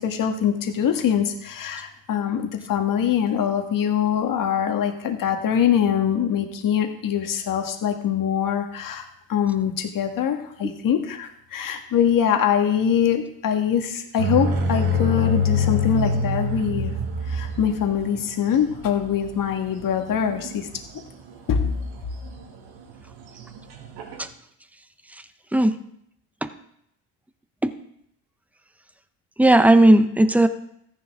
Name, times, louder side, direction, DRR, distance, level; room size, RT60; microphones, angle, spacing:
voice 1, 0.0-16.9 17.3-20.7 21.5-21.6, left 8 dB, 55° left, 5 dB, 1.7 m, -23 dB
sound 1, 14.2-21.0 21.6-22.1 22.4-22.5 22.9-24.2, left 2 dB, 75° right, 2.3 m, -25 dB
voice 2, 29.4-30.5, right 1 dB, 5° right, 10 dB, 0.8 m, -15 dB
14.0 x 10.5 x 3.7 m, 0.73 s
cardioid pair, 95°, 39 cm